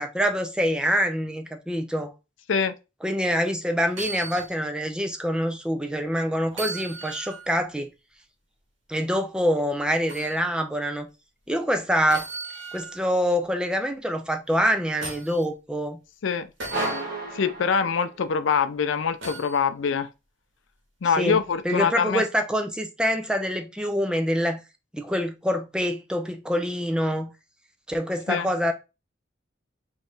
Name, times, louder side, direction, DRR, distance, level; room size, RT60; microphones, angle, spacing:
voice 1, 0.0-2.1 3.0-7.9 8.9-11.1 11.5-12.3 12.7-16.0 21.2-21.4 21.6-24.6 24.9-27.3 27.9-28.7, equal, 5° right, 0.5 m, -25 dB
sound 1, 3.9-4.5 5.0-5.1 6.5-7.5 10.1-10.4 12.1-13.0 14.5-15.4 16.6-17.0 19.2-19.6 21.4-21.5, right 3 dB, 70° right, 1.7 m, -37 dB
sound 2, 16.7-18.5, right 2 dB, 50° right, 1.4 m, -32 dB
voice 2, 17.3-20.1 21.0-22.2 28.3-28.5, left 6 dB, 75° left, 0.5 m, -24 dB
4.3 x 3.2 x 3.3 m
head